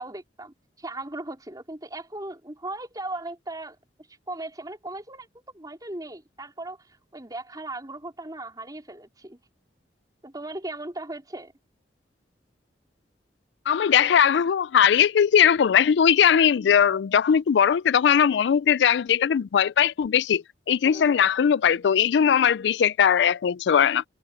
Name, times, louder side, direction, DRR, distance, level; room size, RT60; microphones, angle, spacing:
voice 1, 0.0-3.8 4.1-5.3 5.5-9.4 10.2-11.5 20.8-21.1, right 2 dB, 20° right, 4.1 m, -37 dB
voice 2, 13.7-24.0, left 8 dB, 80° left, 0.4 m, -20 dB
head